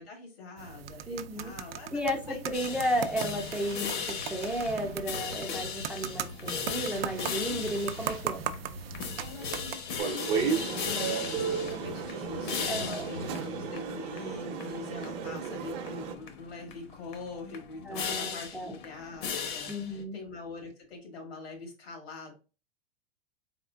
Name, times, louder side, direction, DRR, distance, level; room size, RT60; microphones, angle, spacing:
voice 1, 0.0-2.4 7.2-7.7 9.2-22.3, left 3 dB, 85° left, 2 dB, 2.0 m, -44 dB
sound 1, 0.6-9.8, right 10 dB, 75° right, 0.5 m, -39 dB
voice 2, 1.1-1.5 1.9-8.4 10.9-11.2 12.7-13.0 17.9-18.7 19.7-20.2, equal, 5° right, 1 dB, 0.4 m, -33 dB
sound 2, 2.5-20.0, left 6 dB, 55° left, 0.9 m, -38 dB
sound 3, 10.0-16.1, right 6 dB, 40° right, 0.7 m, -33 dB
3.6 x 3.6 x 2.2 m, 0.32 s
hypercardioid pair, 120°, 29 cm